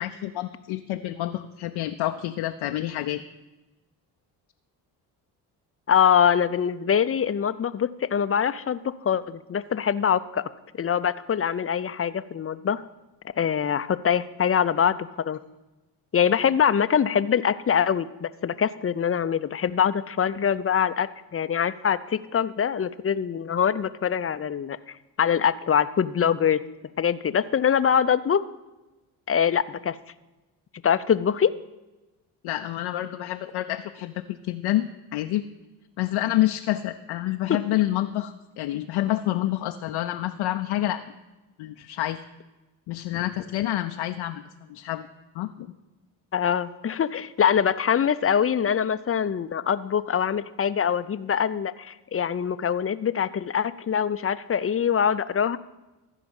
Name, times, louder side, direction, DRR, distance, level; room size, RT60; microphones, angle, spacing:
voice 1, 0.0-3.2 32.4-35.4 36.0-41.0 41.6-42.2 42.9-44.4 44.7-45.1 45.3-45.7, left 14 dB, 70° left, 6 dB, 0.7 m, -28 dB
voice 2, 5.9-10.4 10.8-12.8 13.4-15.4 16.1-24.8 25.2-26.6 27.0-28.4 29.3-30.0 30.8-31.5 37.5-37.6 46.3-55.6, left 8 dB, 30° left, 14 dB, 0.6 m, -24 dB
14.5 x 5.0 x 7.1 m, 1.1 s
supercardioid pair, 55°, 48 cm